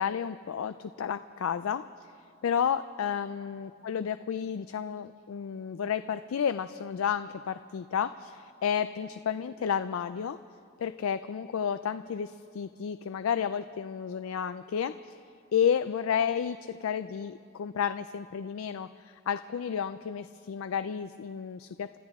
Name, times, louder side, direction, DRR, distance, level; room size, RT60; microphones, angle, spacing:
voice 1, 0.0-1.8 2.4-10.4 10.8-15.2 15.5-22.0, left 8 dB, 90° left, 12 dB, 0.4 m, -31 dB
30.0 x 13.5 x 3.6 m, 2.4 s
head